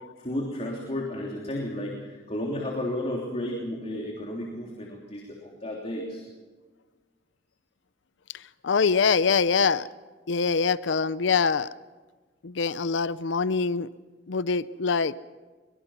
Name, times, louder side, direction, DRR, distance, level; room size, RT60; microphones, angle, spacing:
voice 1, 0.2-6.2, left 1 dB, 35° left, -1 dB, 3.3 m, -33 dB
voice 2, 8.6-9.9 10.3-11.7 12.4-13.9 14.3-15.1, left 5 dB, 75° left, 16 dB, 0.5 m, -24 dB
23.5 x 22.0 x 5.7 m, 1.3 s
head